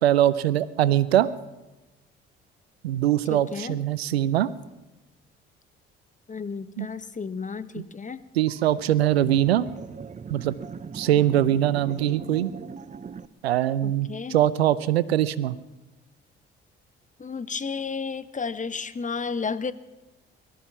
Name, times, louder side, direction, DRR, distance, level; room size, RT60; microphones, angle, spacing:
voice 1, 0.0-1.3 2.8-4.5 6.8-6.9 7.8-7.9 8.4-9.6 10.3-10.5 10.9-12.5 13.4-15.6, right 12 dB, 85° right, 17 dB, 0.5 m, -22 dB
voice 2, 3.3-3.8 6.3-8.2 13.8-14.4 17.2-19.7, left 5 dB, 25° left, 14 dB, 0.9 m, -32 dB
sound 1, 8.5-13.3, right 6 dB, 25° right, 0.6 m, -40 dB
18.5 x 13.0 x 5.9 m, 1.1 s
hypercardioid pair, 50°, 30 cm